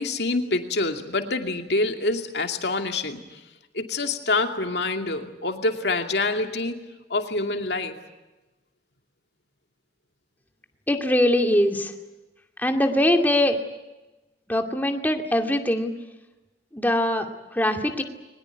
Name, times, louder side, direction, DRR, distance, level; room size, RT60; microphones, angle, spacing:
voice 1, 0.0-3.2 3.7-6.8 7.1-8.0, left 2 dB, 65° left, 5 dB, 2.6 m, -26 dB
voice 2, 10.9-11.9 12.6-13.6 14.5-15.9 16.7-18.0, left 1 dB, 10° left, 4 dB, 2.3 m, -22 dB
22.5 x 21.0 x 9.4 m, 1.1 s
head